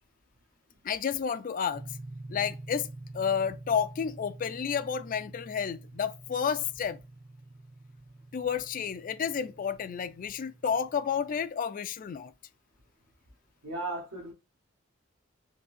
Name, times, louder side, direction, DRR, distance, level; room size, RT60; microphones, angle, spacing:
voice 1, 0.8-1.8 2.3-7.0 8.3-12.3, left 7 dB, 40° left, 0.3 m, -31 dB
sound 1, 1.7-11.5, right 2 dB, 40° right, 0.8 m, -47 dB
voice 2, 13.6-14.3, right 2 dB, 85° right, 1.1 m, -35 dB
3.8 x 2.6 x 2.5 m
head